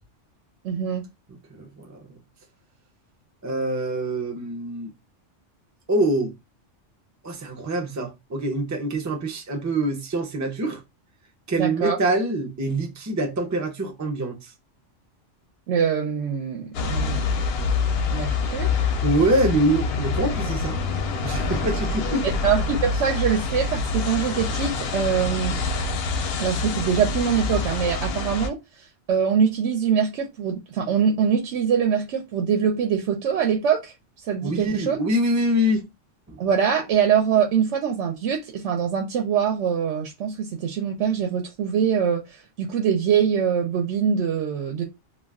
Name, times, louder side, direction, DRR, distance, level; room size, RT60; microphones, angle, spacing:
voice 1, 0.6-1.1 11.6-12.0 15.7-17.2 18.1-18.7 22.2-25.6 26.4-28.6 29.1-33.9 34.3-35.0 36.4-42.2 42.6-44.8, right 7 dB, 75° right, 0.9 m, -23 dB
voice 2, 1.5-2.2 3.4-4.9 5.9-6.3 7.2-10.8 11.5-14.5 19.0-20.8 21.2-22.3 34.4-35.9 36.3-36.4, right 1 dB, 25° right, 0.4 m, -25 dB
sound 1, 16.7-28.5, left 4 dB, 65° left, 0.7 m, -26 dB
2.3 x 2.3 x 3.4 m
omnidirectional pair, 1.2 m